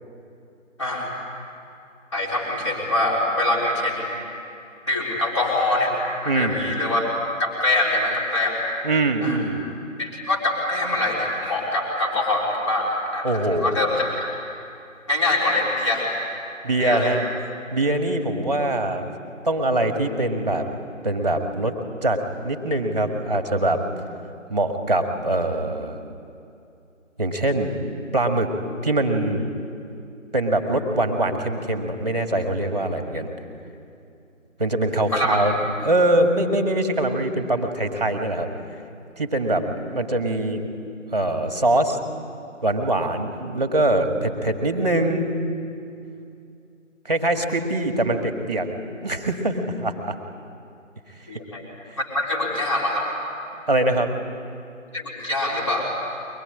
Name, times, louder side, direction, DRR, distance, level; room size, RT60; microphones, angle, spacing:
voice 1, 0.8-1.1 2.1-4.2 4.9-6.0 6.2-7.1 7.4-8.6 9.2-9.4 10.0-14.3 15.1-16.1 16.8-17.1 35.1-35.4 51.3-51.7 52.0-53.1 54.9-55.9, left 2 dB, 20° left, -4 dB, 3.8 m, -24 dB
voice 2, 6.3-6.6 8.8-9.6 13.2-13.8 16.6-17.3 17.7-19.1 19.4-20.7 21.0-21.7 22.0-23.9 24.5-26.0 27.2-27.7 28.1-28.5 28.8-29.4 30.3-33.3 34.6-35.6 35.8-38.5 39.2-40.6 41.1-42.0 42.6-45.3 47.1-48.7 49.0-50.2 53.7-54.1, right 1 dB, 30° right, 5 dB, 1.8 m, -23 dB
23.0 x 21.5 x 9.9 m, 2.6 s
figure-of-eight pair, 170°, 40 cm